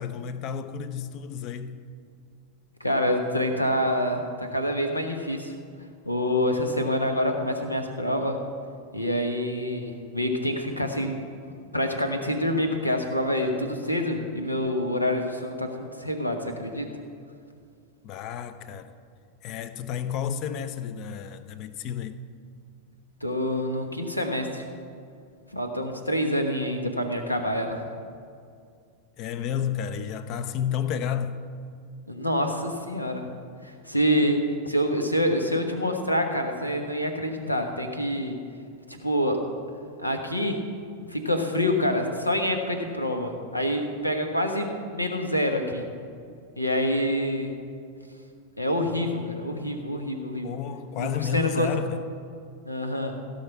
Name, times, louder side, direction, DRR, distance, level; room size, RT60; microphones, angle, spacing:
voice 1, 0.0-1.8 18.0-18.9 19.4-22.2 29.2-31.4 38.1-38.2 50.4-52.0, left 8 dB, 40° left, 0.6 m, -31 dB
voice 2, 2.8-5.6 6.0-8.4 8.9-11.2 11.7-16.9 23.2-24.7 25.5-27.8 32.1-33.3 33.6-38.4 38.9-39.4 40.0-40.6 41.1-45.8 46.6-47.5 48.6-50.5 51.0-51.7 52.6-53.2, equal, 85° left, 1.2 m, -27 dB
16.0 x 5.8 x 6.0 m
figure-of-eight pair, 90°, 0 cm